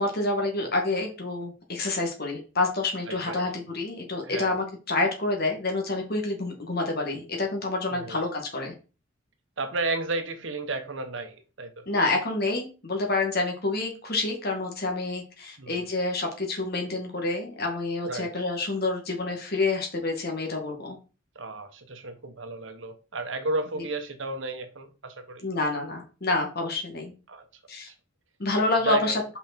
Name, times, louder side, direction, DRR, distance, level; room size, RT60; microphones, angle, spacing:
voice 1, 0.0-8.7 11.9-21.0 25.4-27.1 27.7-27.9 28.4-29.2, left 2 dB, 50° left, 2.3 m, -28 dB
voice 2, 3.1-3.5 4.2-4.6 7.9-8.2 9.6-11.9 15.6-15.9 18.0-18.4 21.3-25.4 27.3-27.4 28.8-29.2, right 3 dB, 70° right, 1.2 m, -33 dB
5.7 x 5.5 x 4.5 m
head